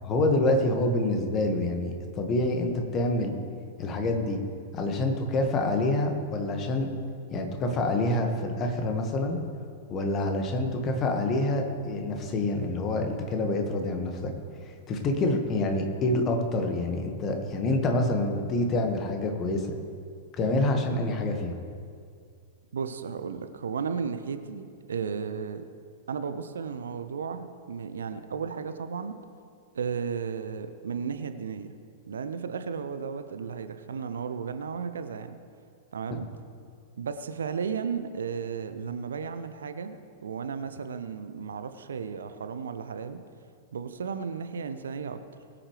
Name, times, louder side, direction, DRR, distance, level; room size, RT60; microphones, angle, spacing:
voice 1, 0.1-3.3 3.8-4.4 4.7-6.9 7.3-9.4 9.9-14.3 14.6-19.7 20.3-21.5, left 2 dB, 30° left, 4 dB, 1.7 m, -27 dB
voice 2, 22.7-25.7 26.1-29.2 29.7-31.7 32.1-35.3 35.9-36.3 37.0-43.2 43.7-45.2, right 6 dB, 65° right, 10 dB, 0.7 m, -34 dB
21.5 x 8.7 x 3.3 m, 2.3 s
figure-of-eight pair, 100°, 0 cm